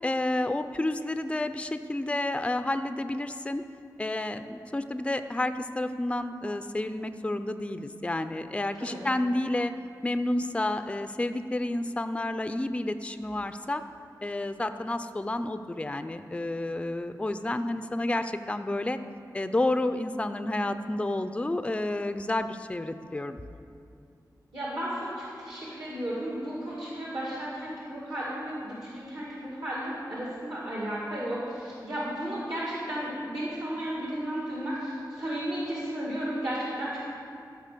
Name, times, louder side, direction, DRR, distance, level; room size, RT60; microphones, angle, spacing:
voice 1, 0.0-3.6 4.0-9.7 10.0-13.8 14.2-19.0 19.3-23.4, left 1 dB, 15° left, 10 dB, 0.4 m, -30 dB
voice 2, 8.7-9.0 24.5-37.0, right 1 dB, 65° right, -6 dB, 2.2 m, -34 dB
14.0 x 5.0 x 6.7 m, 2.4 s
wide cardioid pair, 80°, 7 cm